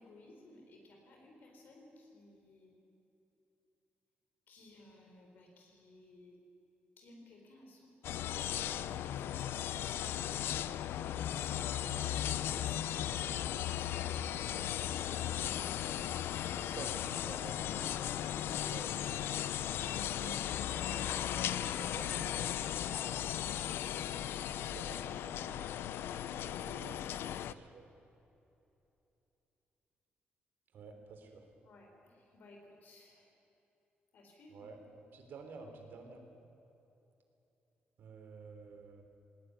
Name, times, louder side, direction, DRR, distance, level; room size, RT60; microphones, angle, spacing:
voice 1, 0.0-2.7 4.5-6.4 7.0-9.1 11.8-14.4 31.6-33.3 34.1-34.7, left 1 dB, 55° left, 1 dB, 4.1 m, -58 dB
sound 1, 8.0-27.5, left 11 dB, 85° left, 0.6 m, -36 dB
voice 2, 16.6-17.6 18.0-18.2 18.5-19.2 19.8-20.4 20.8-21.2 21.5-22.5 24.7-25.9 26.2-27.8 30.7-31.4 34.5-36.2 38.0-39.0, right 4 dB, 60° right, 4 dB, 3.5 m, -51 dB
20.0 x 19.5 x 9.5 m, 2.9 s
wide cardioid pair, 175°, 4 cm